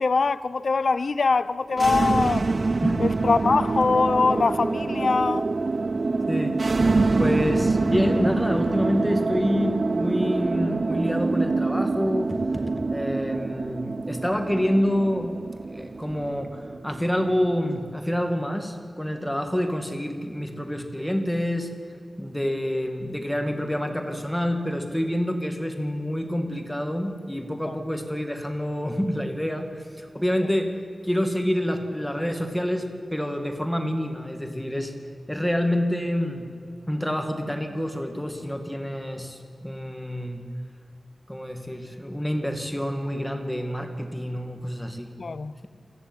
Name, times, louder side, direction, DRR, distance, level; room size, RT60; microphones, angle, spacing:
voice 1, 0.0-2.4 3.0-5.5 27.7-27.8 45.2-45.5, left 4 dB, 70° left, 16 dB, 0.7 m, -23 dB
sound 1, 1.7-17.8, right 3 dB, 55° right, 0.5 m, -25 dB
voice 2, 6.3-12.6 12.9-15.4 15.7-21.7 22.2-30.8 31.0-34.9 35.3-36.5 36.9-40.5 41.3-45.1, equal, 5° left, 4 dB, 2.3 m, -27 dB
24.0 x 15.0 x 9.1 m, 2.4 s
wide cardioid pair, 75°, 0 cm